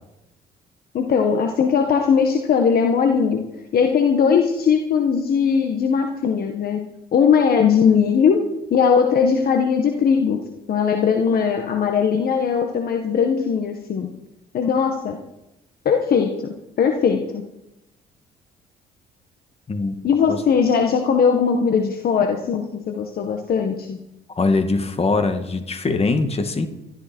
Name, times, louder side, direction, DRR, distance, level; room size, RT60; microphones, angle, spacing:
voice 1, 0.9-3.5 3.7-6.8 7.1-10.4 10.7-14.1 14.5-15.2 15.8-17.4 20.0-24.0, left 6 dB, 60° left, 4 dB, 1.6 m, -19 dB
voice 2, 24.4-26.7, left 3 dB, 35° left, 7 dB, 2.2 m, -22 dB
21.0 x 13.5 x 4.6 m, 0.91 s
cardioid pair, 80°, 18 cm